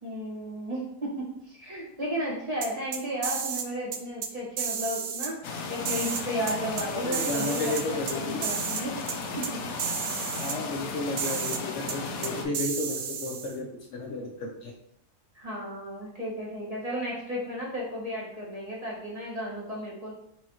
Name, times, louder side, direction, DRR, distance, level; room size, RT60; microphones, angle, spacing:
voice 1, 0.0-9.0 9.3-9.6 15.3-20.1, equal, 30° right, -6 dB, 1.3 m, -34 dB
sound 1, 2.6-3.7 3.9-4.3 4.6-5.3 5.8-6.8 7.1-8.1 8.4-8.8 9.1-9.2 9.4-9.5 9.8-10.6 11.2-11.6 11.9-12.0 12.2-13.5, right 7 dB, 85° right, 1.1 m, -32 dB
sound 2, 5.4-12.4, left 4 dB, 85° left, 1.1 m, -35 dB
voice 2, 6.9-8.4 10.4-14.7, left 2 dB, 65° left, 1 dB, 0.9 m, -33 dB
4.5 x 4.1 x 2.9 m, 0.74 s
omnidirectional pair, 1.4 m